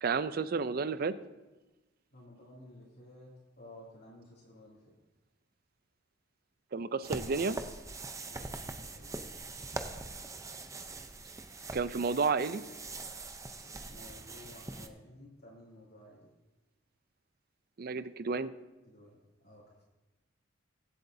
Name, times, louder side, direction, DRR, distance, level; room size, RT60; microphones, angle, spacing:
voice 1, 0.0-1.1 6.7-7.6 11.7-12.6 17.8-18.5, right 4 dB, 55° right, 14 dB, 0.5 m, -31 dB
voice 2, 2.1-4.9 8.3-9.9 13.9-16.3 18.9-19.2 19.4-19.8, left 1 dB, 60° left, -9 dB, 2.8 m, -54 dB
sound 1, 7.0-14.9, right 3 dB, 15° right, 0.6 m, -43 dB
23.0 x 7.9 x 2.7 m, 1.1 s
head